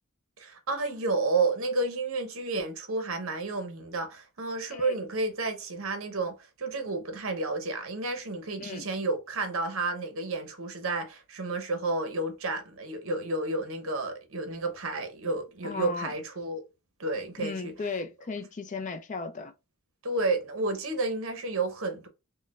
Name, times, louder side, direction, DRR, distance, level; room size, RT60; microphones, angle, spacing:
voice 1, 0.4-16.6 17.0-17.7 20.0-22.1, right 3 dB, 60° right, 0.8 m, -31 dB
voice 2, 15.6-16.1 17.4-19.5, left 4 dB, 35° left, 0.4 m, -36 dB
4.0 x 2.1 x 2.4 m
head